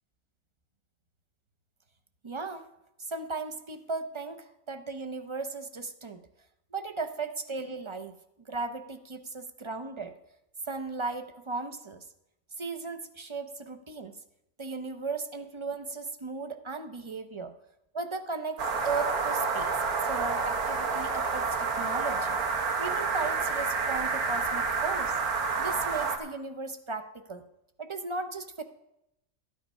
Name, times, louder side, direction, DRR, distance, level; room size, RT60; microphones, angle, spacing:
voice 1, 2.2-2.7 3.1-6.2 6.7-8.1 8.5-10.1 10.7-12.0 12.6-14.1 14.6-17.5 17.9-19.8 20.0-22.4 22.8-25.2 25.6-27.4 27.8-28.6, right 4 dB, 35° right, 9 dB, 0.4 m, -36 dB
sound 1, 18.6-26.2, right 4 dB, 85° right, 1.7 m, -29 dB
13.0 x 9.3 x 5.4 m, 0.84 s
omnidirectional pair, 1.5 m